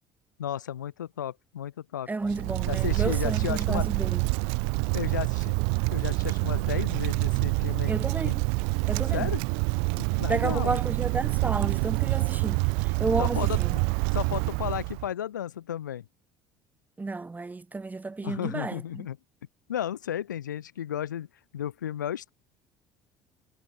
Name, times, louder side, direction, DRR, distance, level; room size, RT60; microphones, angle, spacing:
voice 1, 0.4-2.1 2.7-3.9 4.9-5.5 5.9-7.9 8.2-8.4 9.1-9.4 10.0-10.8 13.2-13.9 14.1-16.0 18.2-19.2 19.7-21.3 21.5-22.3, left 10 dB, 75° left, 2.6 m, -33 dB
voice 2, 2.1-4.2 7.9-8.4 8.9-9.3 10.3-13.8 17.0-19.1, right 3 dB, 15° right, 2.8 m, -32 dB
Wind, 2.2-15.1, right 40 dB or more, 60° right, 2.2 m, -27 dB
figure-of-eight pair, 60°, 10 cm